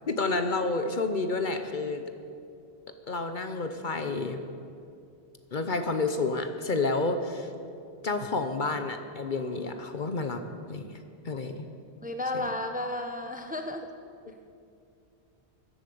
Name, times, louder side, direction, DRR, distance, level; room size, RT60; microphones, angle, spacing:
voice 1, 0.1-2.0 3.1-4.4 5.5-7.5 8.0-10.4 10.7-10.9 11.2-11.7 12.3-12.4, left 3 dB, 50° left, 7 dB, 0.9 m, -29 dB
voice 2, 12.0-13.9, left 2 dB, 10° right, 5 dB, 0.8 m, -33 dB
15.5 x 12.0 x 6.9 m, 2.4 s
omnidirectional pair, 1.1 m